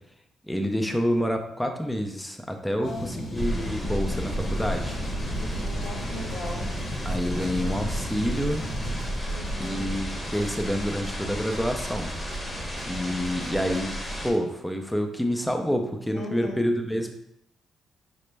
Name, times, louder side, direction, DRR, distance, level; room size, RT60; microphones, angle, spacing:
voice 1, 0.5-4.9 7.0-8.6 9.6-12.1 12.5-13.9 14.2-17.1, equal, 5° left, 4 dB, 0.4 m, -28 dB
voice 2, 2.8-3.3 5.3-6.7 7.3-7.5 9.3-9.9 16.1-16.6, left 2 dB, 80° left, 1 dB, 0.7 m, -39 dB
sound 1, 2.8-9.1, equal, 50° left, 0.8 m, -36 dB
sound 2, 3.4-14.3, equal, 20° left, 0.8 m, -32 dB
sound 3, 4.2-14.3, right 2 dB, 65° right, 0.6 m, -46 dB
5.0 x 2.1 x 3.2 m, 0.76 s
cardioid pair, 90°, 0 cm